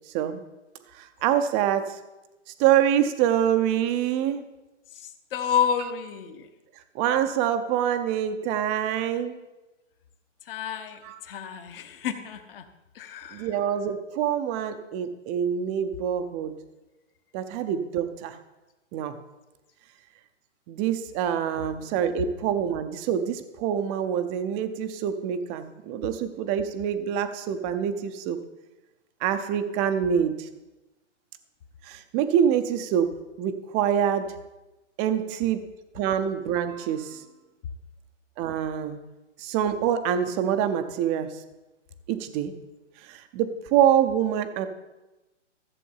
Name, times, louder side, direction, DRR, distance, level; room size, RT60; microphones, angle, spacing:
voice 1, 0.9-2.0 2.6-4.4 6.9-9.4 11.0-11.2 13.3-16.5 17.3-18.3 18.9-19.2 20.7-28.4 29.2-30.5 31.8-33.1 33.4-34.3 35.0-35.6 35.9-37.2 38.4-39.0 39.4-41.3 42.1-42.5 43.1-44.7, right 9 dB, 20° right, 9 dB, 0.6 m, -25 dB
voice 2, 4.9-6.5 10.5-12.6 12.9-13.5, left 8 dB, 45° left, 7 dB, 1.3 m, -30 dB
14.0 x 7.6 x 5.5 m, 1.1 s
hypercardioid pair, 145°, 37 cm